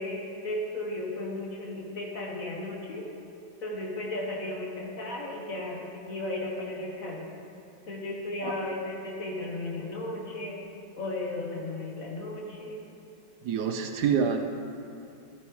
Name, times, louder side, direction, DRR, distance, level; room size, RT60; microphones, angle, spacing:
voice 1, 0.0-3.0 3.6-7.3 7.9-10.6 11.0-12.8, left 2 dB, 50° left, -2 dB, 1.6 m, -35 dB
voice 2, 13.4-14.4, right 7 dB, 75° right, 5 dB, 1.1 m, -27 dB
12.5 x 8.5 x 3.2 m, 2.7 s
omnidirectional pair, 1.9 m